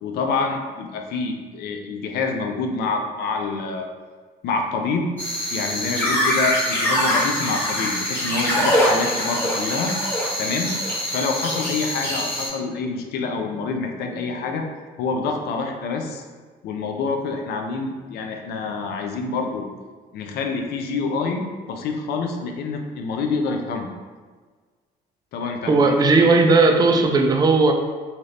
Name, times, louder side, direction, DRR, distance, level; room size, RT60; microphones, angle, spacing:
voice 1, 0.0-3.9 4.4-5.1 5.5-9.9 10.4-10.8 11.1-14.7 15.0-16.2 16.6-19.7 20.1-23.9 25.3-26.3, left 4 dB, 70° left, 4 dB, 0.5 m, -27 dB
sound 1, 5.2-12.5, equal, 10° left, 1.1 m, -23 dB
voice 2, 25.7-27.7, right 3 dB, 25° right, 4 dB, 0.3 m, -16 dB
2.7 x 2.5 x 3.2 m, 1.5 s
cardioid pair, 110°, 17 cm